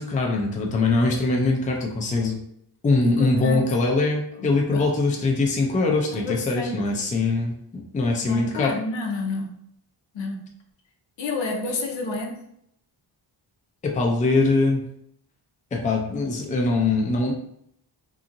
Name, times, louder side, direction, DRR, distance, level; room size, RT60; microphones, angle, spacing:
voice 1, 0.0-2.4 2.8-8.7 13.8-14.8 15.7-17.3, left 3 dB, 20° left, 0 dB, 0.4 m, -22 dB
voice 2, 3.0-3.7 4.4-4.9 6.1-7.1 8.2-9.6 10.1-10.5 11.2-12.4, left 2 dB, 75° left, 2 dB, 0.7 m, -30 dB
2.8 x 2.5 x 2.5 m, 0.71 s
wide cardioid pair, 155°, 46 cm